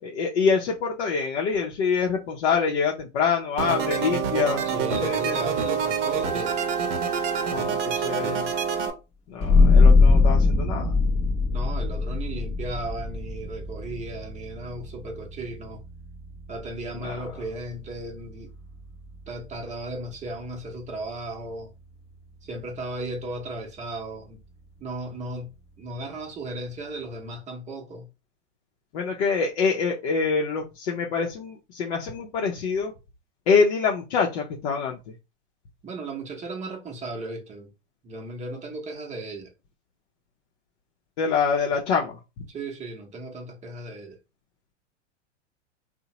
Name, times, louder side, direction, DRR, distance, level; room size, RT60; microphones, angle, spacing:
voice 1, 0.0-4.6 4.9-5.3 7.5-8.5 9.3-11.0 17.0-17.1 28.9-32.9 33.5-35.0 41.2-42.2, left 5 dB, 65° left, 0.6 m, -25 dB
sound 1, 3.6-8.9, right 6 dB, 60° right, 0.7 m, -26 dB
voice 2, 4.6-6.6 11.5-15.8 16.5-18.5 19.3-21.7 22.4-24.4 24.8-25.5 25.8-28.1 35.8-37.7 38.0-39.5 42.5-44.2, right 2 dB, 20° right, 0.7 m, -35 dB
sound 2, 9.4-20.7, left 3 dB, 15° left, 0.5 m, -23 dB
2.8 x 2.1 x 2.8 m
hypercardioid pair, 105°, 36 cm